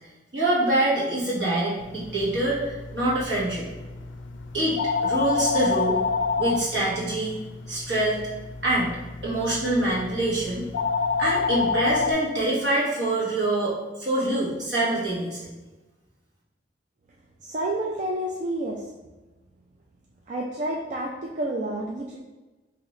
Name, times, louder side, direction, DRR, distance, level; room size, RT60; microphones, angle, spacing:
voice 1, 0.3-3.7 4.5-4.8 5.0-6.0 6.4-7.3 7.7-8.2 8.6-9.0 9.2-10.6 11.2-15.5, right 1 dB, 70° right, -7 dB, 1.4 m, -25 dB
sound 1, 1.8-12.1, left 5 dB, 85° left, 0.4 m, -29 dB
voice 2, 17.4-18.8 20.3-22.2, right 1 dB, 40° right, -2 dB, 0.4 m, -29 dB
3.8 x 2.8 x 3.1 m, 1.1 s
head